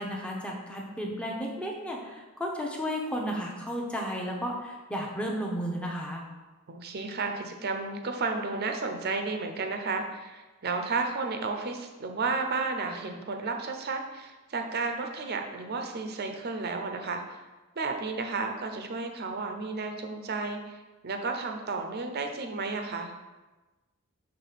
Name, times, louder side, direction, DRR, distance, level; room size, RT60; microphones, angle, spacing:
voice 1, 0.0-6.2, equal, 5° left, -1 dB, 0.8 m, -33 dB
voice 2, 6.7-17.4 17.8-23.1, right 4 dB, 45° right, 4 dB, 0.6 m, -32 dB
5.9 x 3.2 x 5.8 m, 1.2 s
head